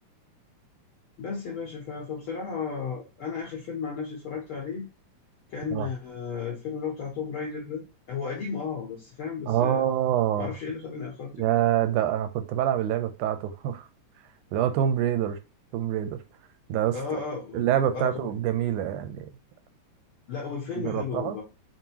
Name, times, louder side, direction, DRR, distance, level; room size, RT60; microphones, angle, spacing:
voice 1, 1.2-4.9 5.5-7.8 8.1-9.8 10.4-11.3 16.9-17.7 17.9-18.3 20.3-21.4, left 5 dB, 70° left, 1.3 m, -34 dB
voice 2, 9.5-10.5 11.4-13.9 14.5-15.4 15.7-16.2 16.7-17.2 17.5-19.3 20.8-21.4, right 11 dB, 85° right, 2.0 m, -26 dB
5.4 x 2.6 x 2.8 m
omnidirectional pair, 3.5 m